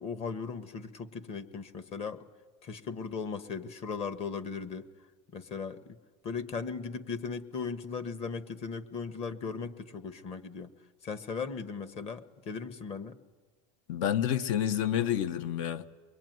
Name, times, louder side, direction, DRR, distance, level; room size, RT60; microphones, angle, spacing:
voice 1, 0.0-2.2 2.6-4.9 5.3-6.0 6.2-10.7 11.0-13.2, left 5 dB, 35° left, 1.4 m, -37 dB
voice 2, 13.9-15.9, left 10 dB, 75° left, 1.2 m, -29 dB
24.0 x 21.5 x 9.4 m
supercardioid pair, 140°, 17 cm